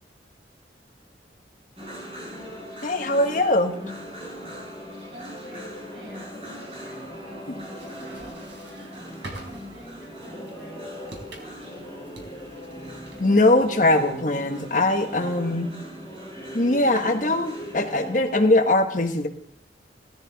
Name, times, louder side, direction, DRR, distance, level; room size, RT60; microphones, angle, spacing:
sound 1, 1.8-18.3, equal, 30° right, 5.5 m, -39 dB
voice 1, 2.8-3.8 7.5-7.6 13.2-15.7 16.5-19.3, left 2 dB, 45° left, 5 dB, 1.2 m, -21 dB
voice 2, 5.1-11.8 15.1-15.7, right 1 dB, 60° right, -6 dB, 6.4 m, -48 dB
sound 2, 7.5-14.8, right 2 dB, 85° right, 4.0 m, -47 dB
17.5 x 13.0 x 4.0 m, 0.69 s
head